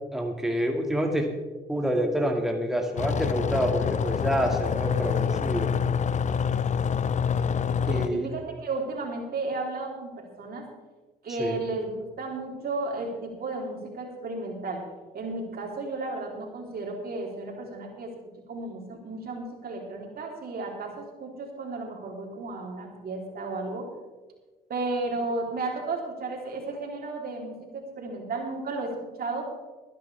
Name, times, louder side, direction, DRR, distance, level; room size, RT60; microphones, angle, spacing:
voice 1, 0.1-1.3 1.7-5.7 7.9-8.3 11.4-11.6, equal, ahead, 2 dB, 2.2 m, -27 dB
sound 1, 3.0-8.1, left 7 dB, 40° left, 0.7 m, -26 dB
voice 2, 7.7-10.6 11.2-14.8 15.1-18.1 18.5-23.9 24.7-29.4, right 3 dB, 50° right, 0 dB, 3.7 m, -33 dB
22.0 x 10.5 x 3.5 m, 1.3 s
hypercardioid pair, 50°, 19 cm